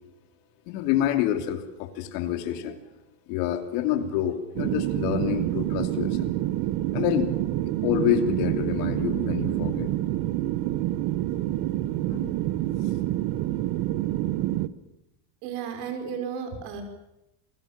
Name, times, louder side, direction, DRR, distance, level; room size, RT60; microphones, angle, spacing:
voice 1, 0.7-2.8 3.3-6.3 6.9-7.3 7.8-9.9 11.9-12.3 12.8-12.9, left 11 dB, 70° left, 7 dB, 3.1 m, -27 dB
sound 1, 4.6-14.7, right 15 dB, 50° right, 1.0 m, -27 dB
voice 2, 15.4-16.8, right 7 dB, 75° right, 5 dB, 5.4 m, -33 dB
28.0 x 19.5 x 7.4 m, 0.93 s
cardioid pair, 175°, 47 cm